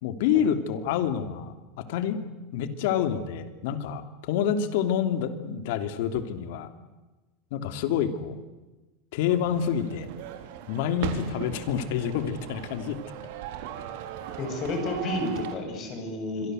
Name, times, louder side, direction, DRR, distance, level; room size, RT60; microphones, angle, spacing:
voice 1, 0.0-2.2 2.5-6.7 7.5-8.4 9.1-10.1 10.7-13.0, left 8 dB, 65° left, 10 dB, 3.0 m, -28 dB
sound 1, 9.3-15.6, right 10 dB, 65° right, 4.0 m, -38 dB
voice 2, 14.4-16.5, left 2 dB, 30° left, 5 dB, 7.5 m, -31 dB
27.0 x 23.5 x 8.0 m, 1.2 s
supercardioid pair, 165°, 0 cm